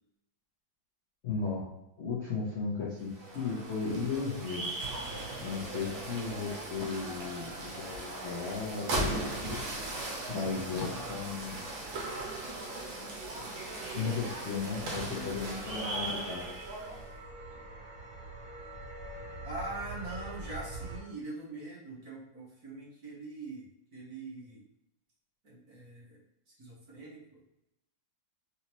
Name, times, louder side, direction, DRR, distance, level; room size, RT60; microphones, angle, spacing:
voice 1, 1.2-1.7 2.0-4.7 5.4-9.6 10.3-11.7 13.4-13.5 13.9-16.5, left 5 dB, 55° left, -6 dB, 0.8 m, -35 dB
sound 1, 3.0-17.1, right 2 dB, 80° right, 1.7 m, -38 dB
voice 2, 10.3-11.9 15.1-15.6 19.4-24.6 25.4-26.2 26.6-27.4, right 2 dB, 50° right, -6 dB, 1.7 m, -43 dB
sound 2, 11.3-21.0, right 2 dB, 30° right, 1.3 m, -47 dB
4.6 x 2.8 x 3.0 m, 0.84 s
omnidirectional pair, 2.2 m